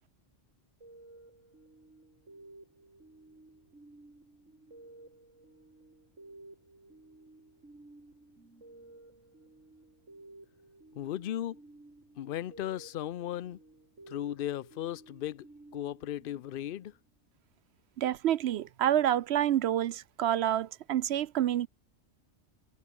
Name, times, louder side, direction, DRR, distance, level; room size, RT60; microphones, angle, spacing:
sound 1, 0.8-17.1, right 2 dB, 85° right, 5.6 m, -55 dB
voice 1, 10.9-11.6 12.2-13.6 14.1-15.4 15.7-16.9, left 11 dB, 55° left, 0.7 m, -36 dB
voice 2, 18.0-21.7, right 11 dB, 65° right, 0.8 m, -28 dB
omnidirectional pair, 1.3 m